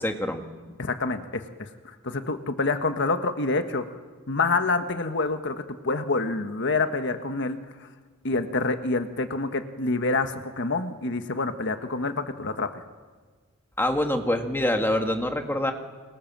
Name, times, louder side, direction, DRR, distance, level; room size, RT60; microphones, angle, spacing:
voice 1, 0.0-0.4 13.8-15.7, left 1 dB, 10° left, 4 dB, 2.1 m, -25 dB
voice 2, 0.8-1.7 2.0-3.9 4.3-7.6 8.2-12.8, left 3 dB, 60° left, 8 dB, 1.5 m, -27 dB
28.0 x 25.5 x 7.5 m, 1.4 s
head